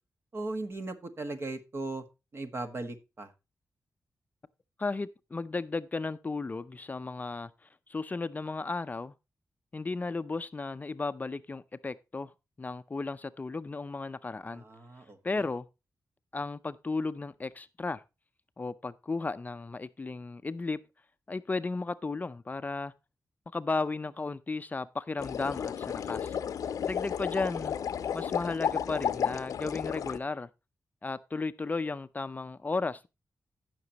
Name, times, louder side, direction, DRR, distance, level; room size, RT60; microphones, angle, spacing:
voice 1, 0.3-2.0 2.3-3.3 14.5-15.4, right 2 dB, 45° right, 1.5 m, -38 dB
voice 2, 4.8-9.1 9.7-12.3 12.6-14.6 15.2-15.7 16.3-18.0 18.6-20.8 21.3-22.9 23.5-26.4 26.8-27.8 28.1-30.5 31.0-33.1, left 3 dB, 30° left, 0.5 m, -34 dB
sound 1, 25.2-30.2, left 8 dB, 85° left, 0.6 m, -33 dB
16.0 x 6.0 x 2.9 m
cardioid pair, 85°, 6 cm